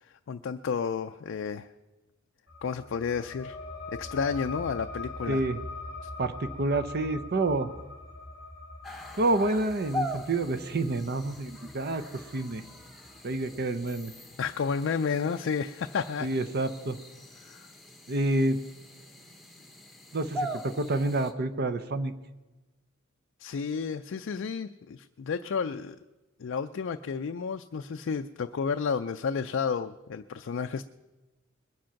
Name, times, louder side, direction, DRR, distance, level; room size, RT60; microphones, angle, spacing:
voice 1, 0.0-1.7 2.6-3.6 3.9-5.4 6.0-6.1 14.4-16.3 17.4-17.7 23.4-26.0 26.4-30.9, left 6 dB, 60° left, 7 dB, 0.4 m, -31 dB
sound 1, 2.5-13.6, left 2 dB, 25° right, 2.9 m, -43 dB
voice 2, 5.3-5.6 6.2-7.7 9.2-12.1 12.3-12.6 13.2-14.1 16.2-17.0 18.1-18.6 20.1-22.1, right 2 dB, 50° right, 11 dB, 0.7 m, -28 dB
sound 2, 8.8-21.3, equal, ahead, 1.0 m, -42 dB
21.5 x 7.7 x 5.8 m, 1.2 s
head